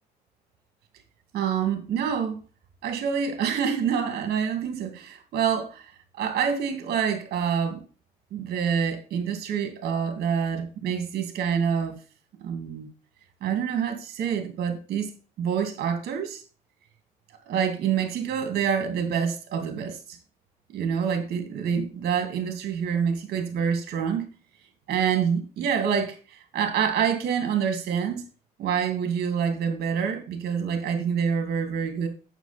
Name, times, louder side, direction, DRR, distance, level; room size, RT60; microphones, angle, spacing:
voice 1, 1.3-2.4 2.8-5.8 6.1-7.8 8.3-12.0 12.4-12.9 13.4-15.1 15.4-16.4 17.5-20.0 20.7-24.3 24.9-28.2 28.6-32.1, right 7 dB, 65° right, 2.4 m, -26 dB
9.1 x 7.7 x 4.2 m
cardioid pair, 110°, 17 cm